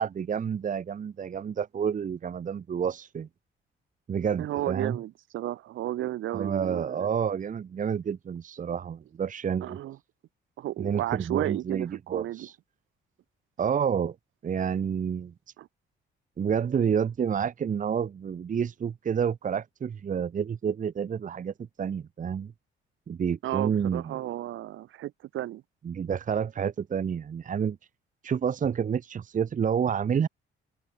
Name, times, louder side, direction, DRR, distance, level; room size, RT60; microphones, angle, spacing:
voice 1, 0.0-3.3 4.1-5.0 6.3-9.8 10.8-12.5 13.6-14.1 14.4-15.3 16.4-22.5 23.1-24.2 25.8-27.8 28.2-30.3, right 7 dB, 40° right, 1.0 m, -29 dB
voice 2, 4.4-7.1 9.6-10.0 10.6-12.5 15.6-15.7 23.4-25.6, right 14 dB, 85° right, 2.7 m, -33 dB
cardioid pair, 90°, 20 cm